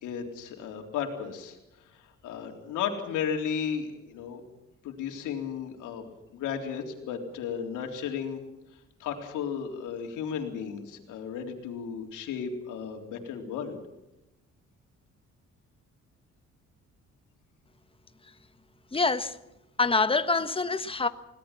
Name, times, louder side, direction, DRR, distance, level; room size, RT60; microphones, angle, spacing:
voice 1, 0.0-4.4 4.8-6.0 6.3-8.4 9.0-13.8, left 7 dB, 90° left, 3.8 m, -34 dB
voice 2, 18.9-19.3 19.8-21.1, left 3 dB, 20° left, 1.4 m, -25 dB
21.5 x 18.0 x 7.4 m
cardioid pair, 90°, 30 cm